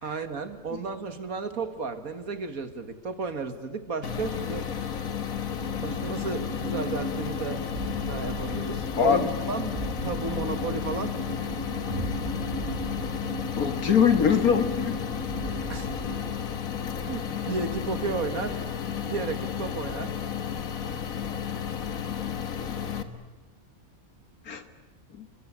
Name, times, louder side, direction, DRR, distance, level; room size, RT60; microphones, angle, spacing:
voice 1, 0.0-4.7 5.8-7.6 8.1-9.7 10.0-11.1 15.7-15.9 17.0-18.6 19.0-20.1, right 4 dB, 75° right, 10 dB, 2.3 m, -33 dB
sound 1, 4.0-23.0, left 8 dB, 70° left, 1.9 m, -32 dB
sound 2, 5.6-16.3, right 1 dB, 45° right, 5.9 m, -37 dB
voice 2, 9.0-9.3 13.6-15.0 24.5-24.6 25.1-25.3, left 7 dB, 85° left, 9 dB, 2.2 m, -22 dB
29.5 x 22.5 x 8.8 m, 1.2 s
omnidirectional pair, 1.5 m